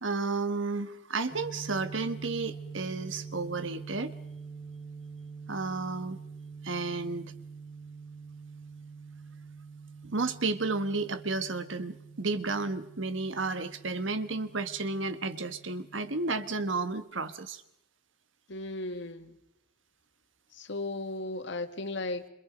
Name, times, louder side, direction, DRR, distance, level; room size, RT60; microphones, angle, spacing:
voice 1, 0.0-4.1 5.5-6.2 6.6-7.3 10.0-17.6, right 3 dB, 70° right, 11 dB, 1.6 m, -32 dB
sound 1, 1.3-16.9, right 5 dB, 25° left, 2.4 m, -46 dB
voice 2, 18.5-19.4 20.5-22.3, left 2 dB, 65° left, 7 dB, 2.2 m, -36 dB
29.0 x 26.5 x 5.2 m, 0.84 s
head